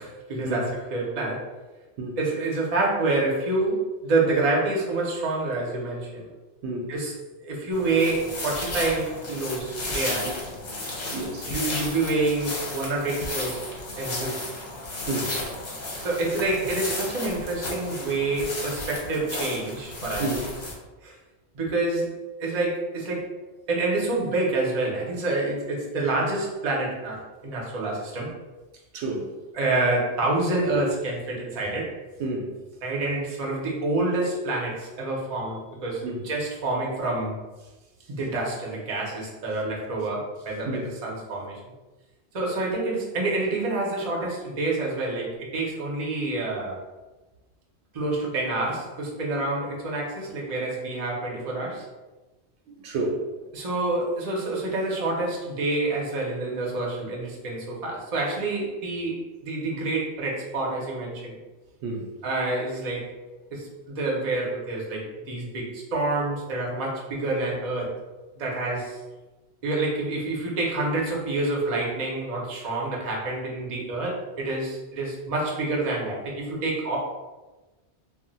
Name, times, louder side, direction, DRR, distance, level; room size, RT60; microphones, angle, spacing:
voice 1, 0.0-1.5 2.2-6.3 6.9-7.1 7.4-10.3 11.4-13.7 14.0-14.4 16.0-20.3 21.0-21.2 21.5-23.3 23.7-28.4 29.5-32.0 32.8-37.4 38.1-41.6 42.3-46.8 47.9-51.9 53.5-61.4 62.2-63.1 63.5-67.9 68.4-69.0 69.6-77.0, right 2 dB, 40° right, 0.6 m, -27 dB
voice 2, 6.6-7.0 10.3-10.4 11.1-11.5 15.1-15.4 20.2-20.5 28.9-29.4 32.2-32.5 36.0-36.3 40.7-40.9 52.8-53.2 61.8-62.1, right 2 dB, 85° right, 0.9 m, -30 dB
sound 1, 7.7-20.7, left 2 dB, 45° left, 0.7 m, -33 dB
2.4 x 2.1 x 3.8 m
omnidirectional pair, 1.1 m